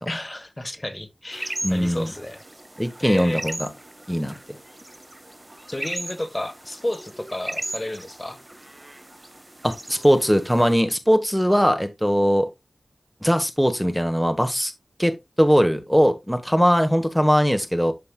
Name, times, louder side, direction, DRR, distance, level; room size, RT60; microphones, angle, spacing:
voice 1, 0.0-2.4 3.0-3.4 5.7-8.4, left 1 dB, 25° left, 1.3 m, -31 dB
sound 1, 1.3-10.7, right 1 dB, 25° right, 0.9 m, -37 dB
voice 2, 1.6-2.1 2.8-3.7 4.1-4.4 9.6-12.5 13.2-14.7 15.0-15.1 15.4-17.9, equal, ahead, 1.2 m, -20 dB
11.5 x 5.3 x 2.3 m
wide cardioid pair, 70°, 0 cm